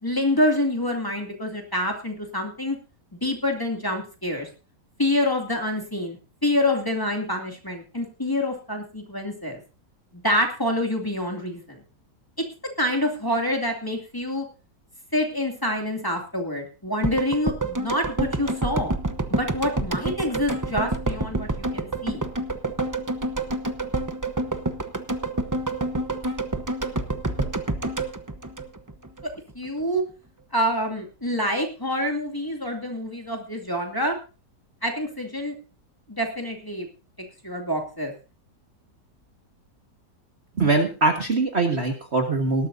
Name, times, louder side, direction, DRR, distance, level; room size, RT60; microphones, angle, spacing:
voice 1, 0.0-2.8 3.1-4.5 5.0-9.6 10.1-11.8 12.8-14.5 15.1-18.9 19.3-22.2 29.5-30.0 30.5-34.2 34.8-35.5 36.1-36.9 37.4-38.1, left 1 dB, 10° left, 1 dB, 2.4 m, -26 dB
sound 1, 17.0-29.2 29.5-29.6, right 2 dB, 20° right, 0.5 m, -28 dB
voice 2, 40.6-42.7, right 3 dB, 40° right, 3 dB, 1.7 m, -22 dB
18.5 x 12.5 x 2.7 m, 0.33 s
omnidirectional pair, 1.8 m